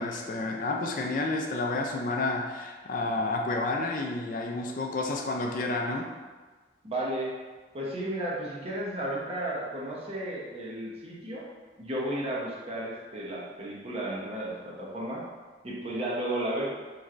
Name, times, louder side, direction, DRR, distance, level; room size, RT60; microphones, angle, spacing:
voice 1, 0.0-6.1, left 2 dB, 50° left, 1 dB, 0.3 m, -30 dB
voice 2, 6.8-7.3 7.7-11.5 11.8-15.2 15.6-16.7, right 1 dB, 35° right, -5 dB, 0.7 m, -33 dB
4.2 x 3.1 x 2.5 m, 1.4 s
head